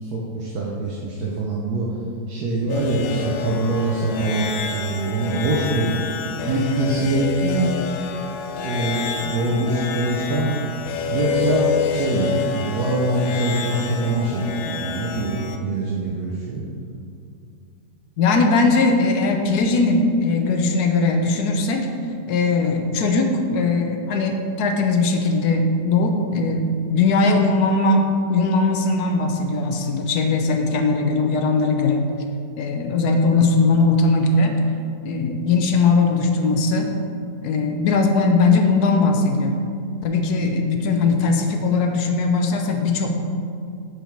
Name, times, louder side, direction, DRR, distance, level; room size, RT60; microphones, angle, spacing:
voice 1, 0.0-1.9 2.3-5.9 6.4-7.8 8.6-10.5 11.1-16.6, right 2 dB, 65° right, -4 dB, 1.2 m, -23 dB
sound 1, 2.7-15.6, left 6 dB, 90° left, 1.3 m, -28 dB
voice 2, 18.2-21.9 22.3-32.0 32.6-34.6 35.0-36.9 37.4-39.6 40.0-43.2, left 3 dB, 70° left, 4 dB, 1.1 m, -19 dB
6.5 x 5.1 x 4.5 m, 2.4 s
omnidirectional pair, 1.9 m